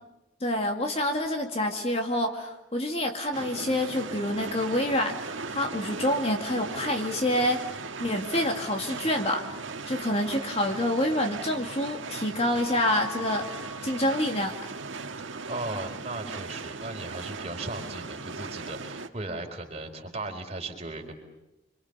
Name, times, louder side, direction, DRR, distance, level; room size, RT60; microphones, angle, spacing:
voice 1, 0.4-5.2 5.5-7.6 8.0-9.6 9.9-14.7, left 1 dB, 30° left, 3 dB, 2.2 m, -27 dB
sound 1, 3.3-19.1, right 4 dB, 80° right, 1.6 m, -38 dB
Mallet percussion, 12.8-14.6, left 1 dB, 60° left, 2.3 m, -43 dB
voice 2, 15.2-21.2, right 2 dB, 30° right, 3 dB, 4.5 m, -37 dB
28.0 x 25.5 x 6.9 m, 0.96 s
head